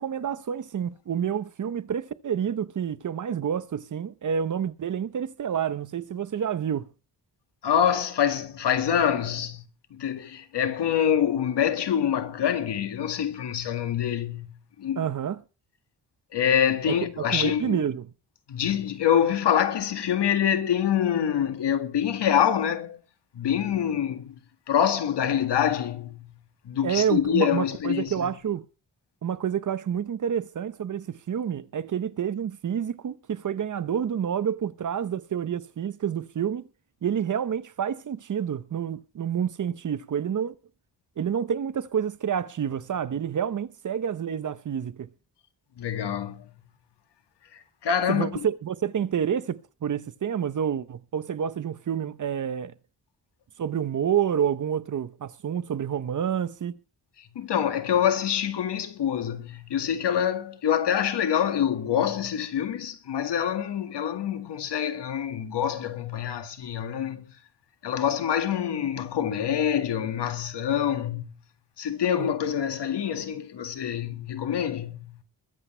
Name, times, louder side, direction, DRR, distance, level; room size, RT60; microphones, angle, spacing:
voice 1, 0.0-6.9 15.0-15.4 16.9-18.1 26.8-28.6 29.2-36.6 37.0-40.5 41.2-45.1 48.1-52.7 53.6-56.7 72.2-72.3, right 8 dB, 50° right, 0.9 m, -28 dB
voice 2, 7.6-9.6 9.9-15.1 16.3-17.8 18.5-23.0 23.4-24.3 24.7-26.3 26.7-28.3 45.8-46.5 47.5-48.5 57.4-67.3 67.8-71.3 71.8-75.2, left 9 dB, 80° left, 2.1 m, -26 dB
22.0 x 8.1 x 4.4 m
wide cardioid pair, 165°, 41 cm